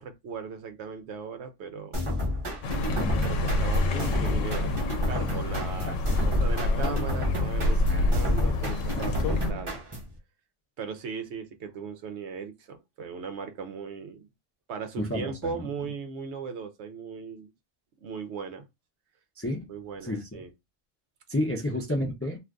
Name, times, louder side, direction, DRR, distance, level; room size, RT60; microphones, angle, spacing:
voice 1, 0.0-2.0 3.2-4.8 5.1-9.7 10.8-14.3 14.7-17.5 18.0-18.7 19.7-20.5, right 5 dB, 70° right, 0.8 m, -38 dB
sound 1, 1.9-10.2, left 1 dB, 30° right, 0.8 m, -31 dB
Accelerating revving vroom, 2.6-9.5, left 2 dB, 85° left, 1.0 m, -27 dB
voice 2, 5.8-6.3 7.6-8.1 8.9-9.1 15.0-15.7 19.4-19.7 20.0-20.4 21.3-22.4, left 1 dB, 20° left, 0.4 m, -31 dB
2.5 x 2.4 x 3.4 m
omnidirectional pair, 1.3 m